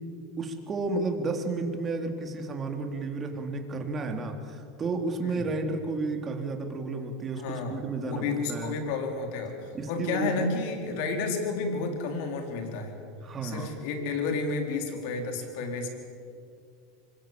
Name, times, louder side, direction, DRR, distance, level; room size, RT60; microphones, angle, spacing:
voice 1, 0.4-8.7 9.7-10.5 13.2-13.7, right 3 dB, 30° right, 4 dB, 3.7 m, -32 dB
voice 2, 7.3-12.9 13.4-15.9, left 4 dB, 65° left, 4 dB, 4.6 m, -31 dB
25.5 x 21.5 x 7.9 m, 2.3 s
hypercardioid pair, 100°, 0 cm